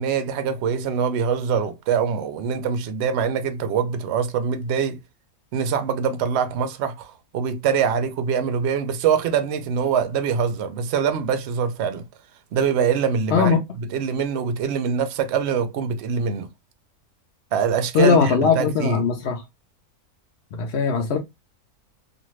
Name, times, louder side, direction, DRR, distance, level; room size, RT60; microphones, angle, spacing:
voice 1, 0.0-5.0 5.5-12.0 12.5-16.5 17.5-19.0, right 7 dB, 65° right, 0.7 m, -24 dB
voice 2, 17.9-19.4 20.5-21.2, left 5 dB, 60° left, 0.7 m, -19 dB
2.6 x 2.5 x 3.0 m
omnidirectional pair, 1.6 m